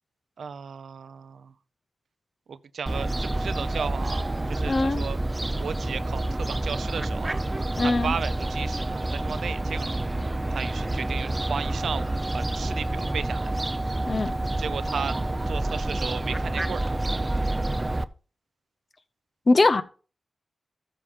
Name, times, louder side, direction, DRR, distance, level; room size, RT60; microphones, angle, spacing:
voice 1, 0.4-1.5 2.5-5.2 5.6-7.4 7.8-9.9 10.5-13.5 14.6-15.2 15.5-16.8, right 6 dB, 85° right, 0.6 m, -34 dB
Fowl, 2.9-18.0, right 2 dB, 25° right, 0.5 m, -28 dB
voice 2, 4.7-5.1 7.8-8.1 14.1-14.4 19.5-19.8, left 3 dB, 50° left, 0.7 m, -21 dB
13.5 x 5.6 x 3.7 m
cardioid pair, 55°, 0 cm